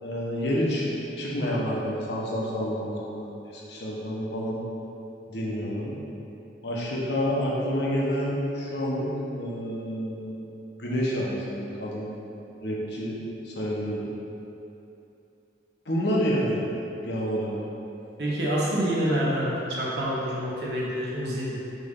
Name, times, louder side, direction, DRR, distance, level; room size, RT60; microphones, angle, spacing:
voice 1, 0.0-0.9 1.2-4.6 5.3-6.0 6.6-10.4 10.8-12.1 12.6-14.1 15.8-16.6 17.0-17.5, equal, 75° left, -5 dB, 1.3 m, -29 dB
voice 2, 18.2-21.6, equal, 70° right, -7 dB, 1.4 m, -27 dB
6.1 x 3.4 x 5.5 m, 2.8 s
head